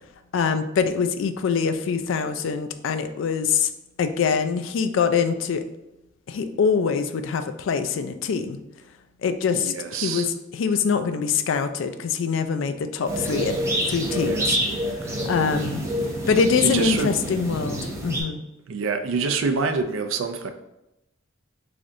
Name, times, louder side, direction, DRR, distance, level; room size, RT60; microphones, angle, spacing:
voice 1, 0.3-3.7 4.0-5.6 6.3-8.6 9.2-13.6 13.9-14.6 15.3-15.8 16.3-18.4, left 6 dB, 65° left, 9 dB, 0.3 m, -24 dB
voice 2, 9.5-10.3 14.0-14.5 15.0-15.2 16.6-17.1 18.7-20.5, right 5 dB, 75° right, 7 dB, 0.4 m, -27 dB
sound 1, 13.1-18.2, equal, 15° right, 0.6 m, -27 dB
3.7 x 3.3 x 2.6 m, 0.92 s
head